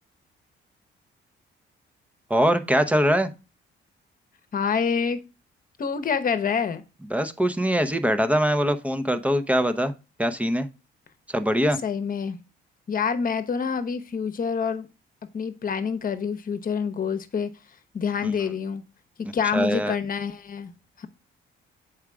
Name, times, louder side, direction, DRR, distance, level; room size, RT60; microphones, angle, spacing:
voice 1, 2.3-3.3 7.1-9.9 10.2-10.7 11.3-11.8 18.2-18.3 19.5-20.0, equal, 5° right, 0.7 m, -22 dB
voice 2, 4.5-5.2 5.8-6.8 11.8-12.4 12.9-14.9 15.3-17.5 17.9-18.8 19.3-20.7 21.0-21.1, left 6 dB, 45° left, 1.0 m, -27 dB
7.2 x 4.9 x 3.5 m
cardioid pair, 90°, 20 cm